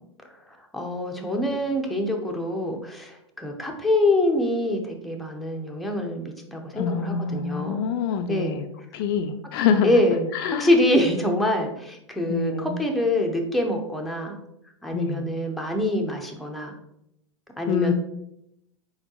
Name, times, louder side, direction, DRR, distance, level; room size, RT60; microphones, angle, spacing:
voice 1, 0.7-7.8 8.3-8.6 9.8-10.3 10.6-14.4 14.8-16.7 17.6-17.9, left 1 dB, ahead, 1 dB, 0.6 m, -25 dB
voice 2, 6.7-8.7 8.9-9.9 10.3-10.7 12.3-12.8 14.9-15.2 17.7-17.9, left 6 dB, 45° left, 7 dB, 0.4 m, -25 dB
4.2 x 3.9 x 2.9 m, 0.79 s
hypercardioid pair, 105°, 16 cm